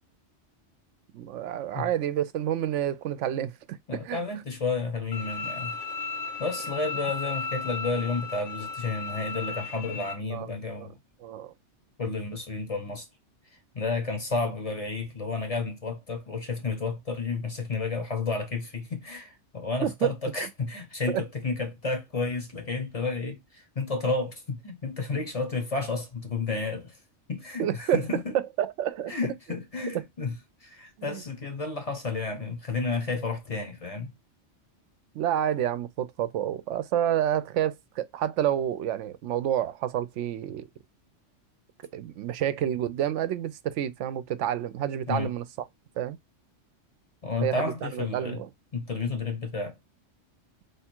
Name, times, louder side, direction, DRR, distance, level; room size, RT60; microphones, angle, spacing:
voice 1, 1.1-4.2 10.3-10.5 10.8-10.9 11.2-11.5 19.8-20.1 21.1-21.2 27.6-28.0 28.6-29.1 29.9-30.0 31.0-31.2 35.1-40.7 41.9-45.4 46.0-46.2 47.4-48.5, right 10 dB, 75° right, 0.9 m, -29 dB
voice 2, 3.9-5.8 6.4-10.9 12.0-13.1 13.7-27.0 27.3-28.3 29.1-34.1 45.1-45.3 47.2-48.4 48.7-49.8, left 3 dB, 35° left, 0.7 m, -31 dB
Bowed string instrument, 5.1-10.1, left 4 dB, 75° left, 1.3 m, -35 dB
3.1 x 2.4 x 4.3 m
omnidirectional pair, 1.3 m